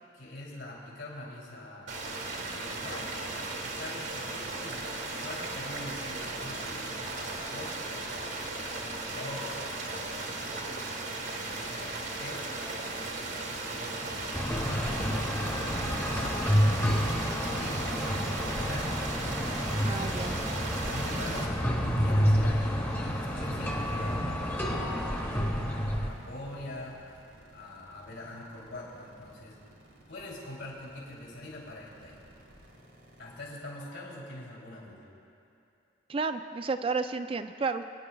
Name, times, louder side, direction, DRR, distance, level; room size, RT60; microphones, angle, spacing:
voice 1, 0.1-3.2 3.6-4.9 5.2-10.8 11.5-12.6 13.2-17.9 18.3-19.7 20.7-27.0 27.5-29.6 30.1-32.2 33.2-35.1, left 1 dB, 70° left, -4 dB, 3.1 m, -44 dB
sound 1, 1.9-21.5, right 2 dB, 65° right, 1.5 m, -36 dB
sound 2, 14.0-33.5, right 2 dB, 90° right, 2.3 m, -48 dB
sound 3, 14.3-26.1, equal, 10° left, 1.0 m, -29 dB
voice 2, 19.8-20.4 36.1-37.8, right 4 dB, 30° right, 9 dB, 0.3 m, -31 dB
26.0 x 9.7 x 2.3 m, 2.7 s
head